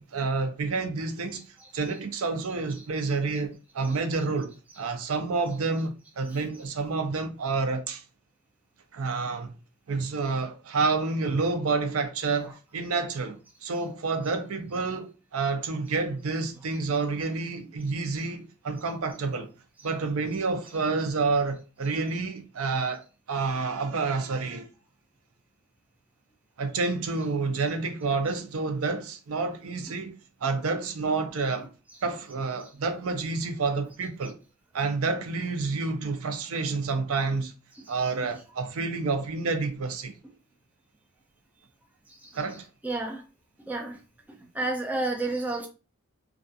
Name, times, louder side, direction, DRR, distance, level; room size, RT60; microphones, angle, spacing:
voice 1, 0.0-1.4 1.7-8.0 8.9-9.5 9.9-19.5 19.8-23.0 23.3-24.7 26.6-30.1 30.4-31.7 32.0-34.4 34.7-37.5 37.9-40.1 42.3-42.7, right 4 dB, 80° right, 0.5 m, -29 dB
voice 2, 42.1-42.4 42.8-43.2 43.7-44.0 44.5-45.7, right 2 dB, 5° right, 0.3 m, -31 dB
2.4 x 2.3 x 2.6 m
head